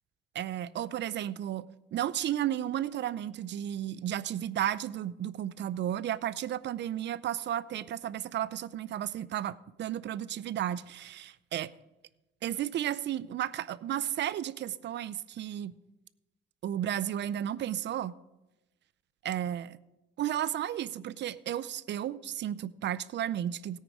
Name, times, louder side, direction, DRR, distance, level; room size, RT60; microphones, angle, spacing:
voice 1, 0.3-11.7 12.4-15.7 16.6-18.2 19.2-19.8 20.2-23.8, right 11 dB, 65° right, 18 dB, 0.6 m, -33 dB
17.0 x 9.0 x 4.9 m, 1.0 s
cardioid pair, 90°, 20 cm